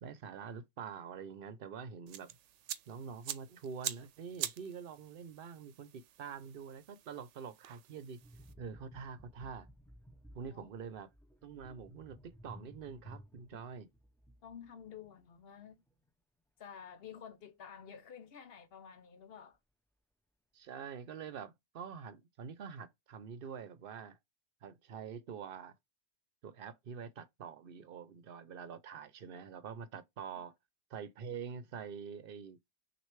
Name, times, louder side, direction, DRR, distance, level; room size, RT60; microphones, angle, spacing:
voice 1, 0.0-2.4 2.9-8.2 8.6-9.7 10.3-11.1 11.4-13.9 20.5-24.2 24.6-25.7 26.4-30.5 30.9-32.6, right 6 dB, 55° right, 0.8 m, -46 dB
sound 1, 2.1-8.5, right 11 dB, 85° right, 0.9 m, -46 dB
sound 2, 8.2-15.6 15.9-16.1, equal, 5° left, 0.4 m, -56 dB
voice 2, 14.4-15.8 16.6-19.6 30.4-30.5, left 8 dB, 60° left, 0.9 m, -51 dB
6.3 x 2.6 x 3.2 m
omnidirectional pair, 1.2 m